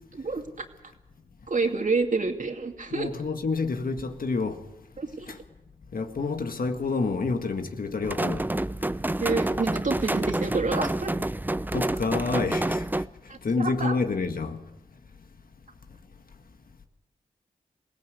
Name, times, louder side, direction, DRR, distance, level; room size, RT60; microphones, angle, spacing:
voice 1, 0.2-0.7 1.5-3.1 5.0-5.3 9.2-11.1 13.3-13.9, right 4 dB, 55° right, 2.5 m, -28 dB
voice 2, 2.9-4.6 5.3-5.4 5.9-8.5 11.7-12.8 13.4-14.6, left 4 dB, 65° left, 1.8 m, -28 dB
sound 1, 8.0-13.1, right 1 dB, 10° right, 0.7 m, -28 dB
22.0 x 17.0 x 8.2 m
cardioid pair, 40°, 16 cm